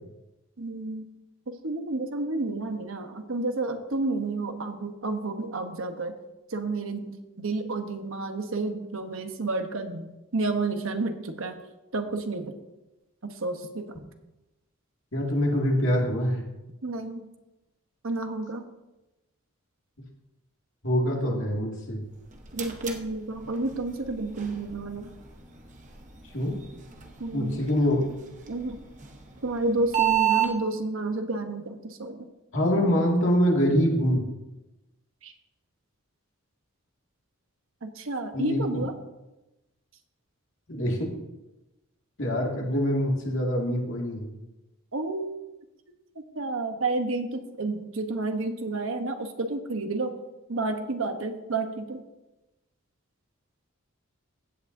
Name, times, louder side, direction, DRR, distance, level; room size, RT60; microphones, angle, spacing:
voice 1, 0.6-1.0 1.5-6.1 6.5-11.6 11.9-12.6 13.2-13.9 16.8-17.3 18.0-18.7 22.5-25.2 27.2-27.6 28.5-28.9 29.4-32.3 35.2-35.3 37.8-38.9 44.9-45.3 46.3-50.2 50.5-52.0, right 2 dB, 70° right, 6 dB, 1.0 m, -30 dB
voice 2, 15.1-16.4 20.8-22.0 26.3-26.6 27.3-28.0 32.5-34.2 38.3-38.8 40.7-41.1 42.2-44.3, equal, 60° left, -2 dB, 2.3 m, -25 dB
sound 1, 22.0-30.5, right 11 dB, 35° right, 0.9 m, -33 dB
15.5 x 8.2 x 2.7 m, 1.0 s
head